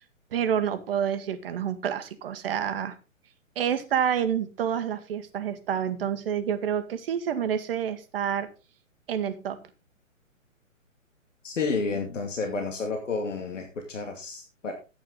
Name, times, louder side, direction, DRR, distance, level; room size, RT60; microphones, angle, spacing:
voice 1, 0.3-3.0 3.5-8.5 9.1-9.6, right 8 dB, 45° right, 1.5 m, -28 dB
voice 2, 11.4-14.7, left 4 dB, 65° left, 2.5 m, -30 dB
12.0 x 9.0 x 3.9 m
figure-of-eight pair, 130°, 40 cm